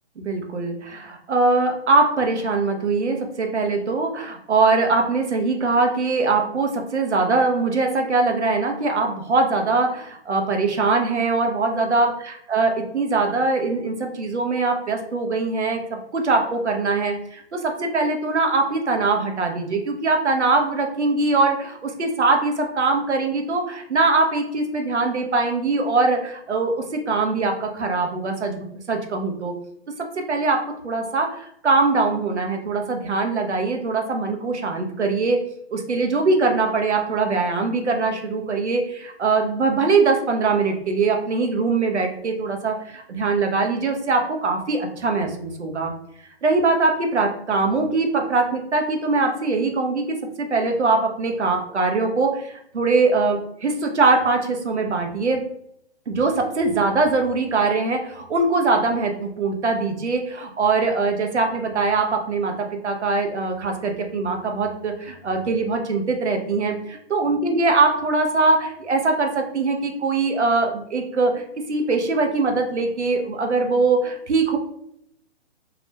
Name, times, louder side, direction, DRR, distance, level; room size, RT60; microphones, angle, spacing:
voice 1, 0.2-15.8 16.1-29.5 30.0-35.4 35.7-45.9 46.4-55.4 56.1-71.4 71.7-74.6, right 3 dB, 90° right, 3 dB, 0.6 m, -22 dB
2.4 x 2.1 x 2.9 m, 0.72 s
figure-of-eight pair, 125°, 33 cm